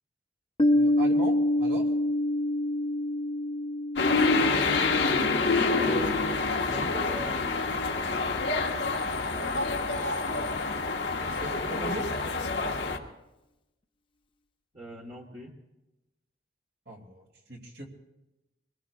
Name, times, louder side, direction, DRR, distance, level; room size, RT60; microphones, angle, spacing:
Piano, 0.6-6.0, left 1 dB, 30° left, 0.8 m, -27 dB
voice 1, 0.7-1.9 9.3-10.1 10.3-10.5 11.3-12.1 16.9-17.9, right 1 dB, 65° right, 1 dB, 2.5 m, -40 dB
sound 1, 4.0-13.0, left 3 dB, 90° left, 1.5 m, -27 dB
voice 2, 5.7-7.8 14.7-15.5, right 1 dB, 35° right, -2 dB, 1.4 m, -40 dB
25.5 x 21.0 x 2.4 m, 0.98 s
head